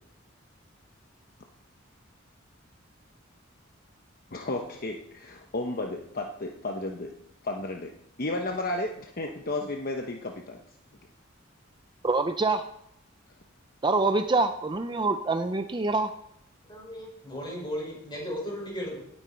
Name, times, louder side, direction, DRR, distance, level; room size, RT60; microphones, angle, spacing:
voice 1, 4.3-7.1 7.4-7.9 8.2-10.6, left 2 dB, 50° left, 2 dB, 1.0 m, -33 dB
voice 2, 12.0-12.6 13.8-16.1, right 3 dB, 25° right, 8 dB, 0.6 m, -25 dB
voice 3, 16.7-19.0, equal, 25° left, -3 dB, 5.8 m, -35 dB
17.5 x 8.9 x 4.4 m, 0.73 s
head